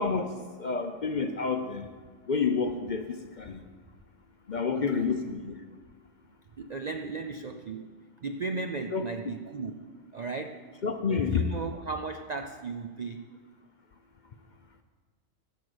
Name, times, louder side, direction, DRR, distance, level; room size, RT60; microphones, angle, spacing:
voice 1, 0.0-1.9 2.3-3.6 4.5-5.5 8.9-9.0 10.8-11.4, left 5 dB, 45° left, 7 dB, 0.6 m, -29 dB
voice 2, 4.7-5.1 6.6-10.7 11.1-13.3, right 4 dB, 55° right, 6 dB, 0.4 m, -36 dB
11.0 x 7.4 x 7.9 m, 1.5 s
omnidirectional pair, 1.3 m